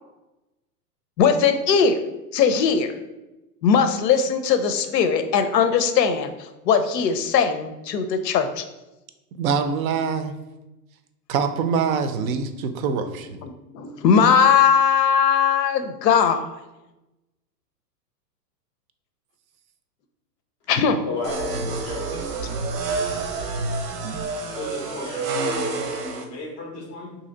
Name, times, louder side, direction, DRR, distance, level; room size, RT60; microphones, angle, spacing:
voice 1, 1.2-2.0 2.3-2.9 3.6-6.3 6.7-8.7 13.4-16.5 20.7-21.0, left 6 dB, 90° left, 9 dB, 0.6 m, -19 dB
voice 2, 9.4-10.3 11.3-13.3, right 6 dB, 60° right, 9 dB, 0.5 m, -24 dB
voice 3, 21.0-22.5 24.6-27.2, left 2 dB, 15° left, -1 dB, 0.3 m, -34 dB
sound 1, 21.2-26.2, right 3 dB, 85° right, 0.8 m, -28 dB
2.8 x 2.7 x 3.8 m, 0.99 s
hypercardioid pair, 135°, 48 cm